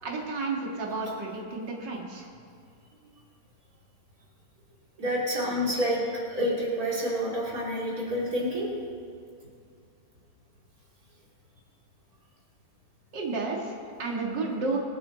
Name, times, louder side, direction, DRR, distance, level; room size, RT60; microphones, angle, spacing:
voice 1, 0.0-2.3 13.1-14.8, right 3 dB, 75° right, -1 dB, 2.5 m, -32 dB
voice 2, 5.0-8.7, equal, 55° right, -5 dB, 3.3 m, -28 dB
24.5 x 8.7 x 3.9 m, 2.4 s
omnidirectional pair, 1.9 m